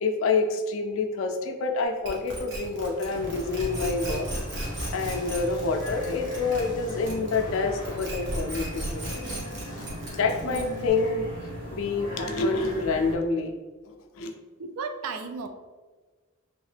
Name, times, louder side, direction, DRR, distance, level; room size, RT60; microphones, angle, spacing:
voice 1, 0.0-4.3 4.9-9.1 10.1-11.3 11.7-13.5 13.9-14.3, left 4 dB, 60° left, 4 dB, 0.4 m, -27 dB
sound 1, 2.0-7.5 7.8-10.9, right 1 dB, 50° right, 0.9 m, -35 dB
sound 2, 2.8-11.1, left 1 dB, 20° left, 0.6 m, -49 dB
sound 3, 3.1-13.1, equal, 25° right, 0.9 m, -38 dB
voice 2, 10.4-11.0 14.6-15.5, right 4 dB, 75° right, 8 dB, 0.4 m, -36 dB
3.1 x 2.8 x 3.2 m, 1.3 s
head